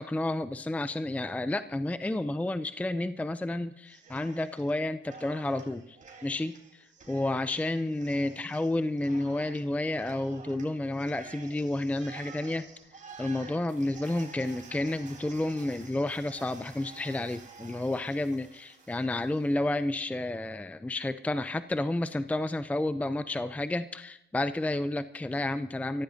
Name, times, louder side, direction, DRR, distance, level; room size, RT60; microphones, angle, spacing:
voice 1, 0.0-6.0 6.2-12.6 13.2-26.0, left 1 dB, 5° left, 11 dB, 0.5 m, -31 dB
Cheering, 3.9-4.7 5.0-19.5, right 4 dB, 40° right, 4.1 m, -50 dB
23.5 x 15.5 x 2.7 m, 0.77 s
cardioid pair, 90°, 20 cm